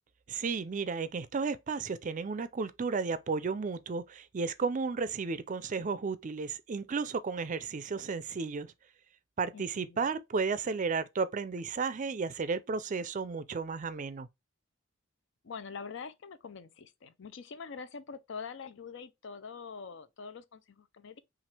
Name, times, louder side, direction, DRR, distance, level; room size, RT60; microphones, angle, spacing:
voice 1, 0.3-8.7 9.4-14.3, right 4 dB, 40° right, 0.4 m, -33 dB
voice 2, 9.5-10.1 15.4-21.2, left 5 dB, 65° left, 0.5 m, -44 dB
5.8 x 2.5 x 3.2 m
head